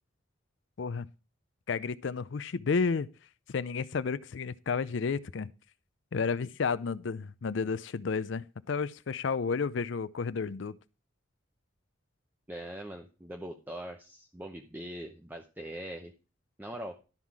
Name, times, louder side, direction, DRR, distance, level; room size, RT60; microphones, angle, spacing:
voice 1, 1.7-3.1 3.5-5.5 6.1-10.8, left 5 dB, 65° left, 0.5 m, -31 dB
voice 2, 12.5-16.1 16.6-17.0, right 1 dB, 10° right, 0.7 m, -42 dB
12.0 x 5.6 x 4.7 m
head